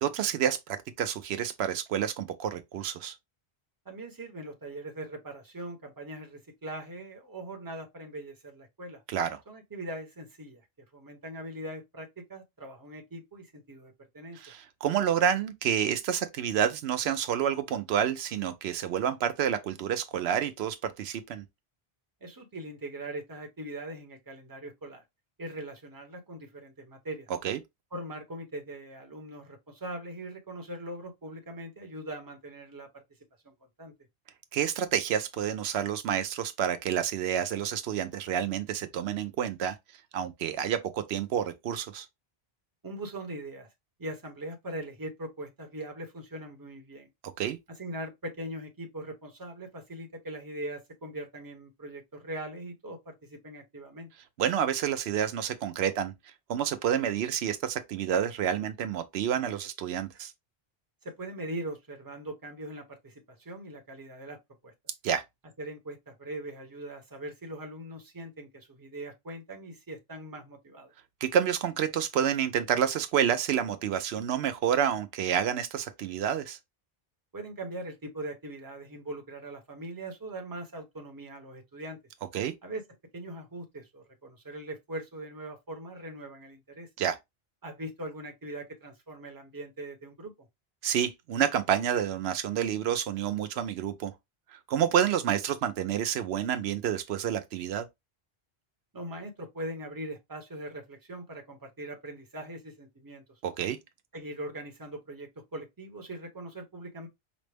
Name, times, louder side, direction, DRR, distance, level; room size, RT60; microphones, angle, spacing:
voice 1, 0.0-3.1 9.1-9.4 14.4-21.4 27.4-27.6 34.5-39.8 40.1-42.1 47.4-47.6 54.4-56.1 56.5-60.3 65.0-65.2 71.2-76.6 82.3-82.5 87.0-87.2 90.8-94.1 94.5-97.9 103.4-103.8, right 9 dB, 85° right, 0.8 m, -29 dB
voice 2, 3.9-9.0 9.5-10.6 10.9-14.4 22.2-25.0 25.4-27.3 27.9-33.0 33.4-33.9 42.8-43.7 44.0-47.1 47.7-54.1 61.0-64.7 65.6-70.9 77.3-82.0 82.6-82.8 83.1-86.9 87.6-90.5 98.9-103.2 104.1-107.1, right 1 dB, 20° right, 0.8 m, -41 dB
5.1 x 2.0 x 3.3 m
omnidirectional pair, 1.0 m